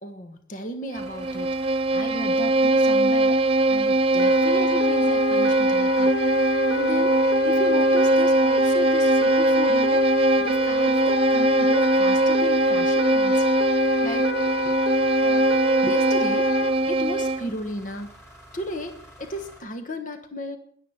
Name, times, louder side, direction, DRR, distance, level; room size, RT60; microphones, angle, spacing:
voice 1, 0.0-6.2 6.7-13.5 14.0-14.8 15.2-15.5 15.8-20.6, left 1 dB, 45° left, 7 dB, 1.3 m, -35 dB
sound 1, 0.9-19.6, equal, 15° left, 4.7 m, -49 dB
Bowed string instrument, 0.9-17.5, right 1 dB, 30° right, 0.4 m, -21 dB
sound 2, 4.2-16.7, left 2 dB, 80° left, 1.2 m, -29 dB
17.0 x 11.5 x 4.5 m, 0.68 s
head